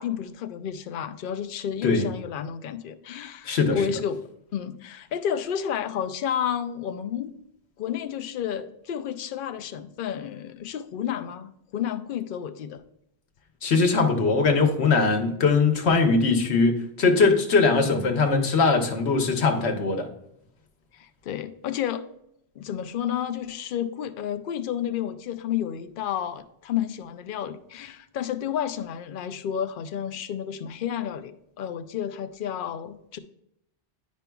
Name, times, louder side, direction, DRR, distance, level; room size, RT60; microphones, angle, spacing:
voice 1, 0.0-7.3 7.8-12.8 20.9-22.0 22.6-33.2, left 9 dB, 60° left, 11 dB, 0.7 m, -31 dB
voice 2, 3.4-3.8 13.6-20.1, left 4 dB, 85° left, 4 dB, 1.2 m, -21 dB
10.0 x 5.3 x 2.3 m, 0.78 s
omnidirectional pair, 1.1 m